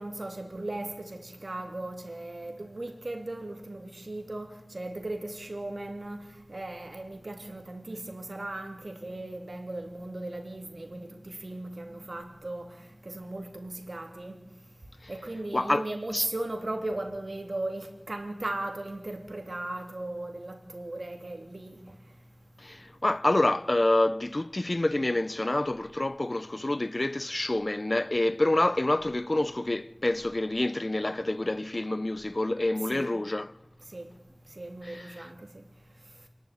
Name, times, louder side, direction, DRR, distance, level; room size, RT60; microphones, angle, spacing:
voice 1, 0.0-6.2 6.5-12.7 13.0-14.4 15.1-21.8 32.9-33.1 33.9-34.1 34.6-35.5, right 2 dB, 70° right, 3.0 m, -37 dB
voice 2, 15.5-15.8 16.1-16.3 22.6-33.5 34.8-35.3, left 2 dB, 50° left, 0.8 m, -27 dB
26.5 x 11.5 x 9.9 m
wide cardioid pair, 40°, 0 cm